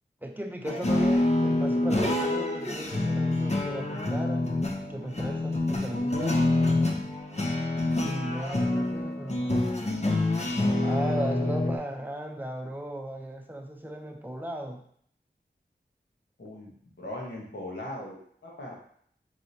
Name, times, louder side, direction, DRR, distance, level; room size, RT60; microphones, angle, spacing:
voice 1, 0.2-6.4 8.0-9.6 10.8-14.8, right 1 dB, 10° right, 2 dB, 0.6 m, -36 dB
sound 1, 0.6-11.8, left 2 dB, 35° left, 0.6 m, -27 dB
voice 2, 16.4-16.7 17.0-18.2 18.4-18.8, left 1 dB, 70° left, -4 dB, 1.3 m, -38 dB
4.7 x 3.1 x 2.8 m, 0.63 s
wide cardioid pair, 50°, 19 cm